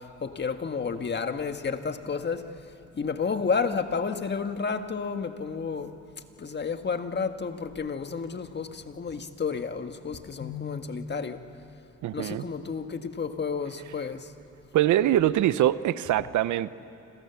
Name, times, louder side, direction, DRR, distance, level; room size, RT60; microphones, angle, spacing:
voice 1, 0.2-2.4 3.0-6.0 6.4-11.4 12.1-14.3, left 5 dB, 35° left, 1.7 m, -31 dB
voice 2, 12.0-12.4 14.7-16.7, right 13 dB, 75° right, 0.8 m, -23 dB
29.5 x 26.5 x 7.1 m
cardioid pair, 90°, 30 cm